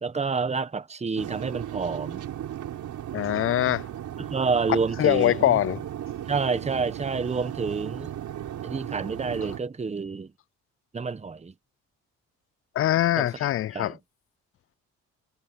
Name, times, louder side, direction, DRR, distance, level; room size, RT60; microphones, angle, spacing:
voice 1, 0.0-2.2 4.2-5.6 6.3-8.1 8.6-10.3 10.9-11.5 13.2-13.3 13.7-14.0, right 4 dB, 20° right, 1.1 m, -28 dB
sound 1, 1.2-9.6, right 11 dB, 70° right, 4.6 m, -36 dB
voice 2, 3.1-3.9 5.0-5.8 12.8-13.9, left 13 dB, 45° left, 0.4 m, -23 dB
cardioid pair, 90°, 30 cm